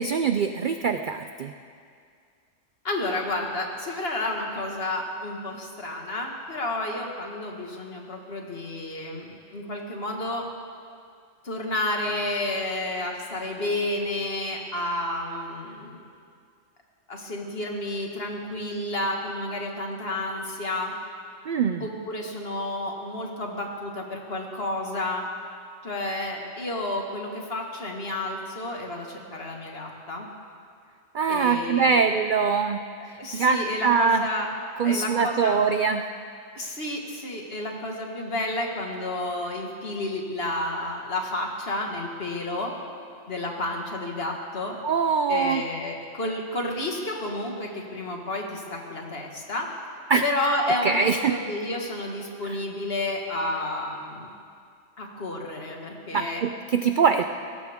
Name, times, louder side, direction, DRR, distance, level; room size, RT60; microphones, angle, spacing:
voice 1, 0.0-1.5 21.5-21.8 31.1-34.3 34.8-36.1 44.8-45.6 50.1-50.2 50.8-51.4 52.4-52.6 56.1-57.2, right 5 dB, 60° right, 7 dB, 0.5 m, -23 dB
voice 2, 2.8-10.4 11.4-16.0 17.1-20.9 21.8-25.2 25.8-30.3 31.3-32.0 33.0-34.5 34.8-35.6 36.5-42.7 43.3-44.8 45.3-49.7 50.2-54.3 55.0-56.4, left 1 dB, 50° left, 1 dB, 2.0 m, -31 dB
21.0 x 17.0 x 3.6 m, 2.3 s
omnidirectional pair, 1.3 m